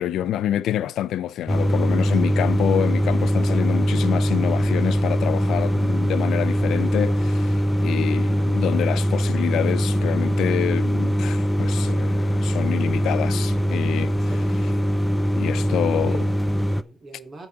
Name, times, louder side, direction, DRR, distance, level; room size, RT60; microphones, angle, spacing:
voice 1, 0.0-14.7 15.4-16.3, left 11 dB, 80° left, 0.4 m, -27 dB
sound 1, 1.5-16.8, equal, 5° left, 0.6 m, -22 dB
voice 2, 14.1-14.7 15.9-17.5, right 2 dB, 40° right, 3.2 m, -42 dB
14.5 x 4.9 x 3.6 m
cardioid pair, 90°, 0 cm